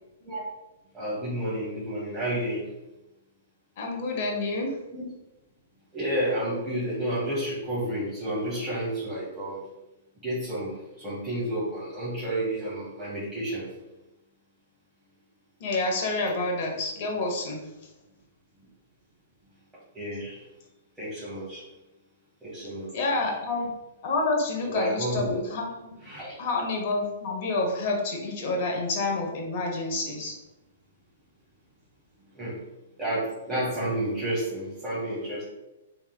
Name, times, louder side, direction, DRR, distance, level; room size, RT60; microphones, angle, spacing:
voice 1, 0.9-2.7 4.9-5.0 5.9-9.6 10.2-13.7 19.9-20.4 21.0-21.6 22.4-23.0 24.7-25.3 26.0-26.4 32.3-32.6 33.0-35.4, right 1 dB, 10° right, -10 dB, 1.2 m, -30 dB
voice 2, 3.8-4.7 15.6-17.6 22.9-23.7 24.0-25.9 26.4-30.3, left 2 dB, 50° left, 0 dB, 0.9 m, -28 dB
3.3 x 3.0 x 2.2 m, 0.98 s
hypercardioid pair, 120°, 0 cm